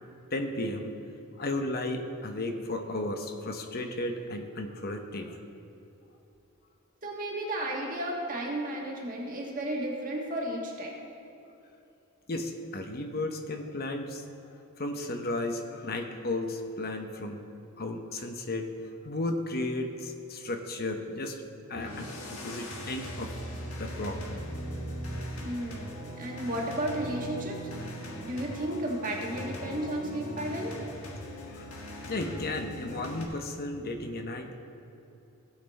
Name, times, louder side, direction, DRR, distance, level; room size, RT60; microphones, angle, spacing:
voice 1, 0.3-0.9 1.4-5.4 12.3-14.2 14.8-17.4 17.8-18.7 19.0-21.4 21.7-23.4 23.8-24.2 31.5-31.7 32.1-34.6, left 2 dB, 50° left, 5 dB, 0.9 m, -34 dB
voice 2, 7.0-11.0 25.4-27.6 28.2-30.8, right 1 dB, 40° right, -2 dB, 1.6 m, -33 dB
sound 1, 21.7-33.3, equal, 85° left, 1.5 m, -39 dB
16.5 x 5.7 x 4.1 m, 2.8 s
head